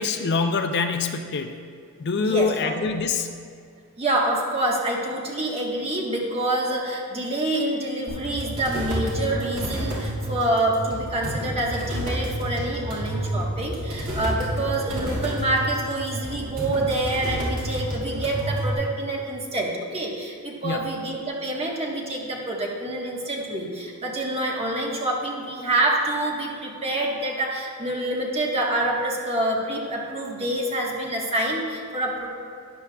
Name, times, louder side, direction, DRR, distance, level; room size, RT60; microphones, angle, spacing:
voice 1, 0.0-1.6 2.0-3.3 20.6-21.0, left 4 dB, 50° left, 7 dB, 0.4 m, -25 dB
voice 2, 2.2-2.7 4.0-32.3, right 1 dB, 25° right, -2 dB, 1.3 m, -27 dB
sound 1, 8.1-18.7, right 1 dB, 60° right, 2.2 m, -30 dB
12.5 x 9.6 x 2.3 m, 2.2 s
head